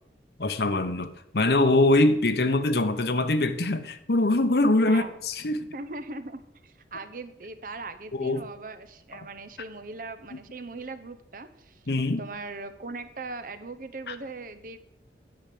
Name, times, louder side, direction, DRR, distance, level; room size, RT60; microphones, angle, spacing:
voice 1, 0.4-5.7 8.1-8.4 11.9-12.2 14.1-14.2, left 2 dB, 65° left, 0.9 m, -23 dB
voice 2, 4.9-5.2 5.7-11.8 12.2-14.8, right 3 dB, 50° right, 0.9 m, -39 dB
10.5 x 7.0 x 7.7 m
head